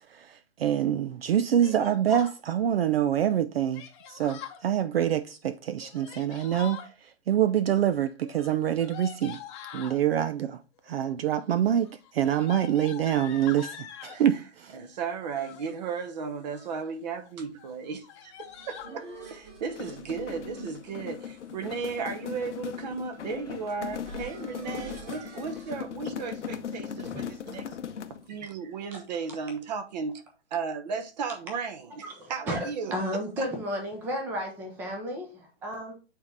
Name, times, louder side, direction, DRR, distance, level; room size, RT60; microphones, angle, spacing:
voice 1, 0.0-9.4 9.7-10.6 10.9-14.4, right 10 dB, 60° right, 0.5 m, -26 dB
Yell, 1.6-2.4 3.7-4.6 5.8-6.9 8.2-10.0 10.9-11.3 11.6-14.2 15.2-15.7 16.3-16.8 17.2-17.3 17.6-17.7 18.0-18.9, left 9 dB, 25° left, 0.8 m, -44 dB
voice 2, 14.7-27.8 28.3-30.2 30.5-33.5, right 5 dB, 40° right, 1.0 m, -35 dB
sound 1, 18.2-25.7, right 3 dB, 20° right, 2.1 m, -48 dB
sound 2, 19.6-28.3, left 8 dB, 80° left, 0.8 m, -38 dB
voice 3, 32.2-35.9, equal, 5° right, 0.6 m, -33 dB
8.5 x 3.7 x 3.2 m
hypercardioid pair, 155°, 35 cm